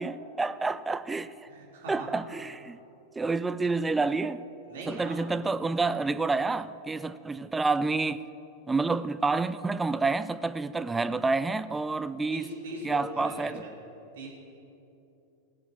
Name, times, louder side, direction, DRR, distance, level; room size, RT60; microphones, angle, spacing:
voice 1, 0.0-1.3 1.9-2.8 3.2-4.4 4.9-8.2 8.7-12.5 12.8-13.7, right 3 dB, 10° right, 0.3 m, -28 dB
voice 2, 1.5-2.1 4.7-5.3 12.3-13.7 14.2-14.3, right 2 dB, 60° right, 3.1 m, -40 dB
16.5 x 7.5 x 7.5 m
figure-of-eight pair, 90°, 0 cm